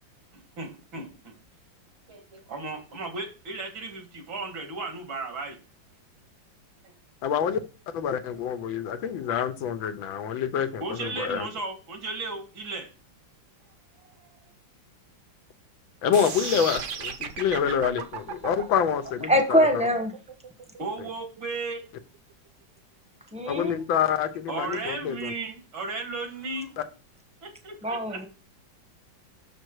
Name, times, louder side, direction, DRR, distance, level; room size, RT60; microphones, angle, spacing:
voice 1, 0.3-1.3 2.1-5.6 6.8-6.9 10.8-12.9 14.2-14.4 20.8-21.8 24.5-26.7 27.4-28.2, right 3 dB, 80° right, 4 dB, 2.6 m, -35 dB
voice 2, 7.2-7.6 7.9-11.5 16.0-19.7 23.5-25.3 26.8-26.9, left 8 dB, 85° left, 9 dB, 1.7 m, -27 dB
sound 1, 16.1-22.2, right 6 dB, 55° right, 0.9 m, -36 dB
voice 3, 19.3-20.1 23.3-23.8 27.8-28.3, equal, 5° right, 5 dB, 0.7 m, -23 dB
6.6 x 5.9 x 4.7 m, 0.34 s
omnidirectional pair, 2.1 m